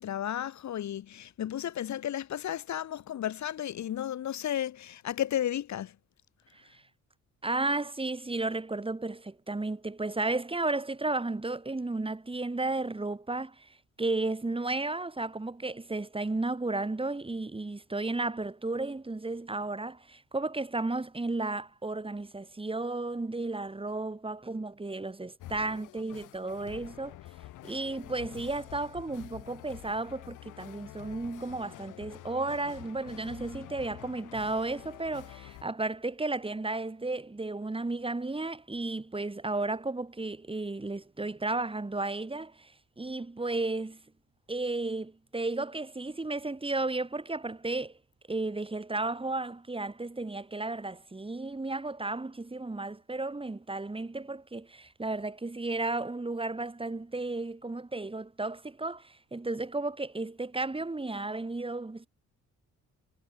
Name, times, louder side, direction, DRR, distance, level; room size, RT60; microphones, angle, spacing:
voice 1, 0.0-5.9, left 11 dB, 65° left, 3.2 m, -33 dB
voice 2, 7.4-27.1 27.6-44.0 44.5-48.0 48.3-62.1, right 2 dB, 20° right, 6.7 m, -33 dB
sound 1, 25.4-35.6, left 15 dB, 90° left, 7.2 m, -48 dB
cardioid pair, 90°, 30 cm